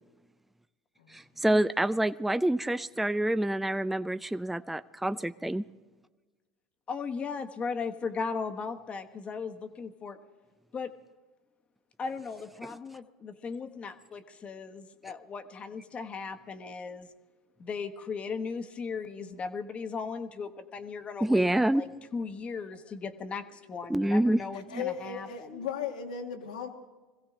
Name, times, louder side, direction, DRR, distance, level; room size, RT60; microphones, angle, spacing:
voice 1, 1.1-5.6 12.6-12.7 21.2-21.8 23.9-24.4 24.7-24.8, right 1 dB, 5° right, 13 dB, 0.4 m, -27 dB
voice 2, 6.9-10.2 10.7-10.9 12.0-17.1 17.6-25.7, left 5 dB, 30° left, 7 dB, 1.3 m, -37 dB
voice 3, 24.5-26.7, left 7 dB, 85° left, 4 dB, 1.9 m, -37 dB
22.0 x 16.0 x 3.8 m, 1.3 s
hypercardioid pair, 90°, 4 cm